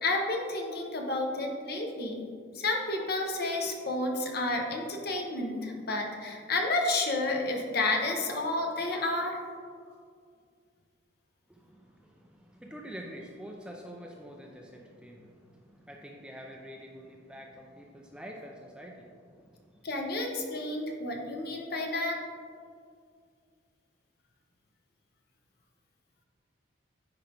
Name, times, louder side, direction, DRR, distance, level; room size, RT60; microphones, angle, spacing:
voice 1, 0.0-2.2 2.5-9.4 19.8-22.2, left 2 dB, 50° left, 1 dB, 0.9 m, -31 dB
voice 2, 11.5-19.9, equal, 5° right, 0 dB, 0.4 m, -47 dB
9.6 x 4.5 x 3.4 m, 2.2 s
head